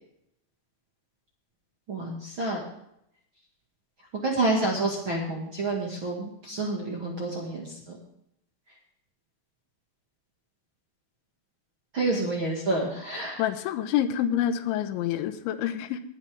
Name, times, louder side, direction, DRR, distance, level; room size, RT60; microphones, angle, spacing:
voice 1, 1.9-2.6 4.1-8.0 11.9-13.4, right 2 dB, 45° right, -2 dB, 1.6 m, -29 dB
voice 2, 13.4-16.0, left 10 dB, 85° left, 10 dB, 3.2 m, -27 dB
20.0 x 9.7 x 3.6 m, 0.76 s
omnidirectional pair, 5.3 m